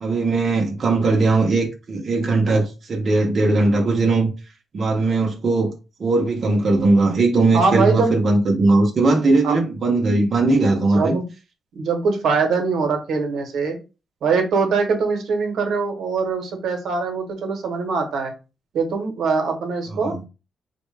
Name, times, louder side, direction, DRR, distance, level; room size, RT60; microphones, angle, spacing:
voice 1, 0.0-4.3 4.7-5.7 6.0-11.1 20.0-20.1, right 3 dB, 40° right, 0.7 m, -19 dB
voice 2, 7.5-8.1 9.4-9.5 10.9-11.2 11.7-13.8 14.2-18.3 18.7-20.3, right 4 dB, 75° right, 0.9 m, -22 dB
4.3 x 2.2 x 3.2 m
wide cardioid pair, 160°, 0 cm